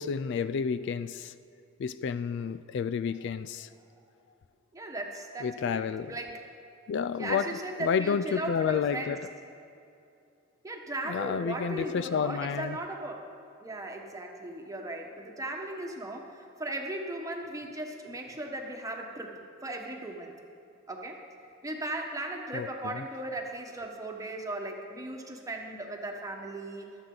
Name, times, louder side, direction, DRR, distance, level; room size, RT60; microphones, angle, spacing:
voice 1, 0.0-1.3 1.8-3.7 5.4-6.2 6.9-9.3 11.1-12.8 22.5-23.0, left 6 dB, 60° left, 14 dB, 0.3 m, -30 dB
voice 2, 4.7-6.5 7.2-9.1 10.6-13.2 13.6-20.3 20.9-21.2 21.6-26.9, right 1 dB, 15° right, 2 dB, 1.2 m, -37 dB
23.5 x 8.1 x 3.9 m, 2.6 s
head